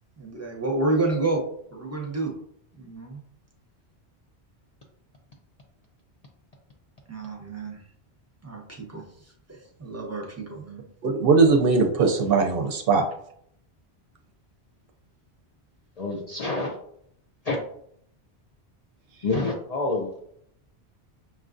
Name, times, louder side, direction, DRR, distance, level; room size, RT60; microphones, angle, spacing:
voice 1, 0.2-1.4 1.7-2.3 2.7-3.2 7.1-7.8 8.4-9.0 9.5-10.8, right 2 dB, 20° right, 0.6 m, -29 dB
voice 2, 11.0-13.0, right 4 dB, 65° right, 0.7 m, -20 dB
voice 3, 16.0-16.7 17.5-17.6 19.2-20.1, left 3 dB, 50° left, 0.5 m, -27 dB
5.9 x 2.3 x 2.5 m
omnidirectional pair, 1.1 m